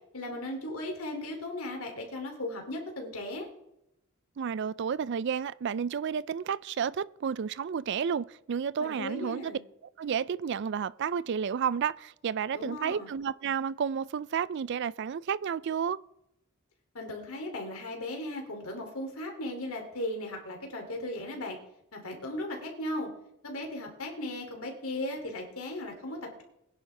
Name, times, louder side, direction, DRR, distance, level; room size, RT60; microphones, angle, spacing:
voice 1, 0.1-3.5 8.8-9.6 12.5-13.1 16.9-21.6 21.9-23.1 23.4-26.4, left 1 dB, 80° left, 2.9 m, -37 dB
voice 2, 4.4-9.6 10.0-16.0, right 7 dB, 55° right, 0.3 m, -31 dB
20.5 x 10.5 x 3.4 m
head